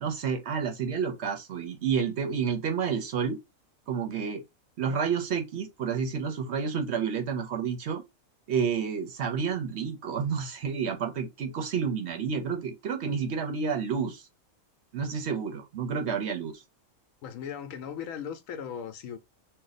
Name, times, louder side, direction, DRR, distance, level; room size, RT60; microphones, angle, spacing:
voice 1, 0.0-3.4 3.9-4.4 4.8-8.0 8.5-14.2 14.9-16.6, right 6 dB, 60° right, 0.8 m, -30 dB
voice 2, 17.2-19.2, left 8 dB, 80° left, 1.0 m, -37 dB
2.6 x 2.2 x 3.9 m
omnidirectional pair, 1.4 m